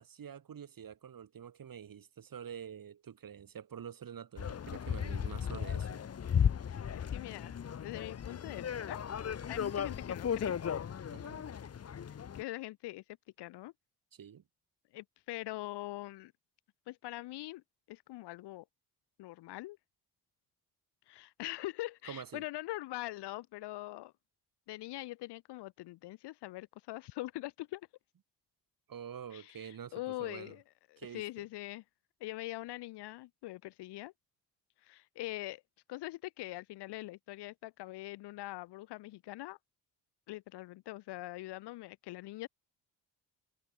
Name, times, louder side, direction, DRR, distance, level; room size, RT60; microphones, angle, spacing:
voice 1, 0.0-6.0 11.1-11.4 14.1-14.4 22.0-22.4 28.9-30.5 31.0-31.2, right 8 dB, 55° right, 4.2 m, -47 dB
sound 1, 4.4-12.4, left 8 dB, 40° left, 1.0 m, -35 dB
voice 2, 6.7-9.0 9.5-10.6 12.1-13.0 13.4-13.7 14.9-16.3 16.9-17.6 17.9-18.6 19.2-19.8 21.1-24.1 24.7-27.9 29.3-30.6 30.9-31.8 32.2-34.1 34.8-35.6 35.9-39.6 40.3-42.5, left 18 dB, 85° left, 0.9 m, -43 dB
cardioid pair, 75°, 40 cm